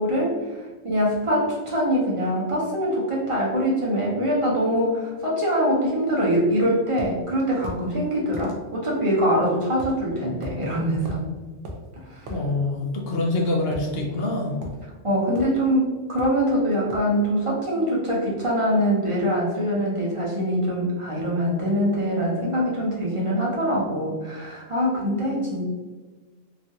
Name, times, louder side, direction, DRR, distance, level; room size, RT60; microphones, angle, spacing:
voice 1, 0.0-11.2 12.1-12.2 15.0-25.6, equal, 35° right, -6 dB, 0.6 m, -23 dB
sound 1, 7.0-7.1 7.6-7.8 8.3-8.5 9.8-10.0 10.4-10.6 11.0-11.3 11.6-11.8 12.3-12.4 13.7-14.3 14.6-14.8 15.3-15.6 16.2-16.4 16.9-17.1, equal, 80° right, 0.9 m, -37 dB
voice 2, 12.3-14.6, left 2 dB, 65° left, 0 dB, 0.7 m, -25 dB
3.1 x 2.4 x 2.7 m, 1.3 s
omnidirectional pair, 1.2 m